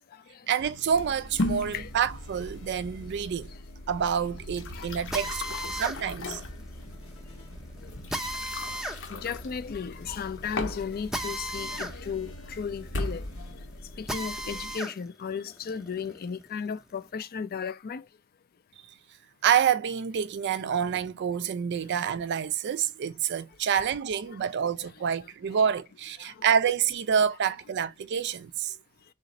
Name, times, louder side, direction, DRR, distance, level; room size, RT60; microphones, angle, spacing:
voice 1, 0.5-3.5 3.9-5.4 5.7-6.4 19.4-28.7, right 8 dB, 55° right, 0.4 m, -27 dB
sound 1, 0.6-13.5, equal, 80° left, 1.4 m, -49 dB
sound 2, 0.9-14.7, left 2 dB, 60° left, 0.8 m, -38 dB
voice 2, 1.6-1.9 4.7-5.2 5.5-5.7 6.2-6.3 7.8-7.9 9.1-13.3 14.0-18.0 24.3-24.4 26.2-26.4, left 6 dB, 45° left, 0.4 m, -35 dB
Drill, 5.1-15.0 15.4-17.0, equal, ahead, 0.6 m, -37 dB
3.8 x 2.5 x 3.9 m
head